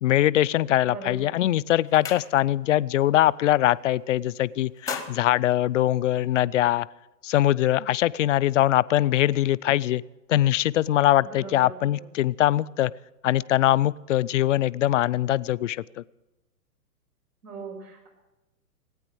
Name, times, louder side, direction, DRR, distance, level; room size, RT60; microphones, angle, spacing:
voice 1, 0.0-6.9 7.2-10.0 10.3-12.9 13.2-15.8, left 13 dB, 50° left, 17 dB, 0.5 m, -22 dB
voice 2, 0.8-1.4 11.2-12.1 17.4-18.1, right 3 dB, 65° right, 3 dB, 5.8 m, -40 dB
sound 1, 1.0-1.3 1.6-2.8 3.1-3.4 3.7-4.2 4.6-6.4, left 5 dB, 5° left, 1.0 m, -39 dB
18.5 x 9.2 x 7.7 m, 1.0 s
hypercardioid pair, 130°, 49 cm